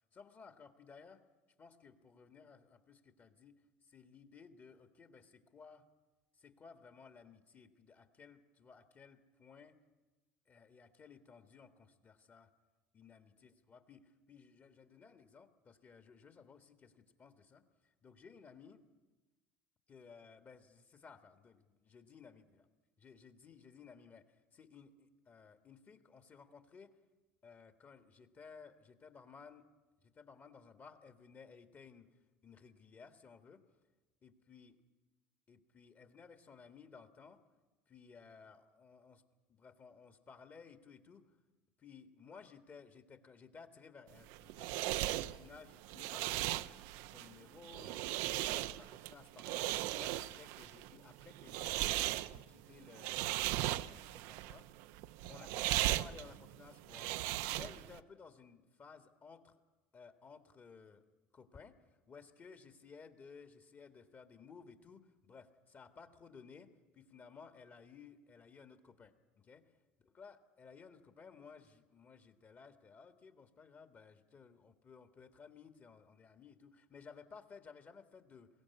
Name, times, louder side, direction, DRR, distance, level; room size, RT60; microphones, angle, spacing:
voice 1, 0.1-1.2 1.6-5.8 6.3-9.8 10.5-12.5 12.9-18.8 19.9-22.4 23.0-24.3 24.5-26.9 27.4-29.7 30.0-32.1 32.4-33.6 34.2-34.8 35.5-37.4 37.9-39.2 39.5-41.3 41.8-46.7 47.1-51.9 52.3-53.3 53.6-54.7 55.3-59.6 59.9-61.0 61.3-61.8 62.1-69.6 70.0-78.5, left 5 dB, 35° left, 8 dB, 1.8 m, -57 dB
sound 1, 44.1-58.0, right 15 dB, 70° right, 0.6 m, -38 dB
21.5 x 16.5 x 9.7 m, 1.2 s
hypercardioid pair, 75°, 6 cm